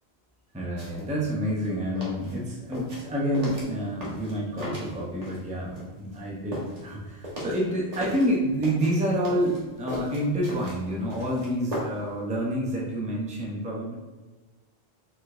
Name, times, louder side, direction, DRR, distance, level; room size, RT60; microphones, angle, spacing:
voice 1, 0.5-13.9, equal, 10° right, -3 dB, 0.6 m, -28 dB
sound 1, 0.8-1.0 1.4-5.5 5.7-8.3 8.6-12.2 12.4-12.5, equal, 40° right, 1.3 m, -37 dB
4.6 x 4.2 x 2.6 m, 1.2 s
omnidirectional pair, 1.1 m